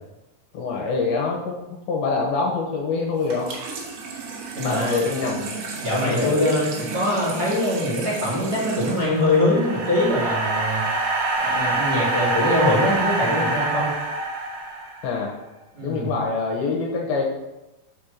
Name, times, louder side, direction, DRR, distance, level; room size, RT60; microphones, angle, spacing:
voice 1, 0.5-3.6 4.6-5.6 6.0-6.5 15.0-15.3 15.8-17.2, left 4 dB, 75° left, -1 dB, 2.8 m, -25 dB
Water tap faucet / Sink (filling or washing), 3.2-10.2, right 4 dB, 85° right, 3.6 m, -34 dB
voice 2, 4.5-5.0 5.8-10.8 11.4-13.9 15.7-16.1, left 1 dB, 30° right, -7 dB, 2.1 m, -23 dB
sound 1, 8.8-15.2, right 2 dB, 65° right, 2.1 m, -25 dB
7.4 x 4.4 x 6.5 m, 1.0 s
omnidirectional pair, 4.6 m